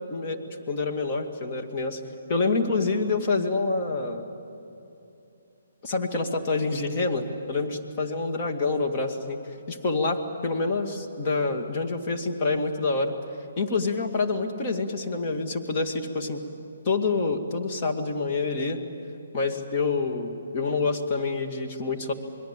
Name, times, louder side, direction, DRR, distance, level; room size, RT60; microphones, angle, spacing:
voice 1, 0.1-2.0 2.3-4.2 5.8-9.4 9.7-13.1 13.6-16.4 16.8-18.8 19.3-22.1, left 3 dB, 35° left, 4 dB, 2.3 m, -27 dB
27.0 x 21.5 x 8.7 m, 2.8 s
figure-of-eight pair, 140°, 0 cm